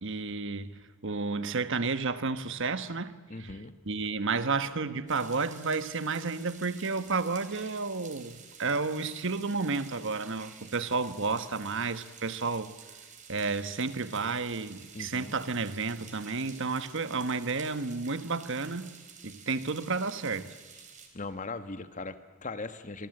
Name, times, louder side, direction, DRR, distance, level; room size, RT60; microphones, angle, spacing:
voice 1, 0.0-3.1 3.4-3.5 3.9-12.7 13.3-18.9 19.2-20.5, right 4 dB, 60° right, 1.2 m, -31 dB
voice 2, 3.3-3.7 14.9-15.4 21.1-23.1, left 3 dB, 35° left, 1.3 m, -39 dB
sound 1, 5.1-21.1, right 6 dB, 35° right, 3.8 m, -51 dB
25.5 x 24.0 x 7.9 m
head